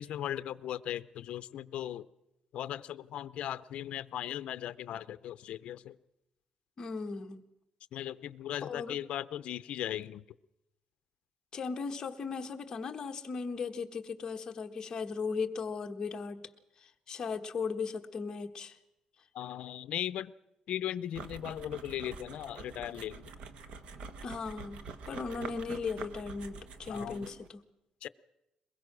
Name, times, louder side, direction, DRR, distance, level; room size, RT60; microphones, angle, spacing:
voice 1, 0.0-2.1 2.5-6.0 7.9-10.2 19.3-20.3 20.7-23.3 26.9-27.3 28.0-28.1, left 11 dB, 65° left, 15 dB, 0.7 m, -38 dB
voice 2, 6.8-7.4 8.6-8.9 11.5-16.5 16.8-18.8 24.2-27.6, left 5 dB, 30° left, 4 dB, 1.4 m, -37 dB
sound 1, 21.1-27.5, right 4 dB, 60° right, 1.3 m, -46 dB
22.0 x 21.0 x 6.1 m, 0.90 s
cardioid pair, 170°, 2 cm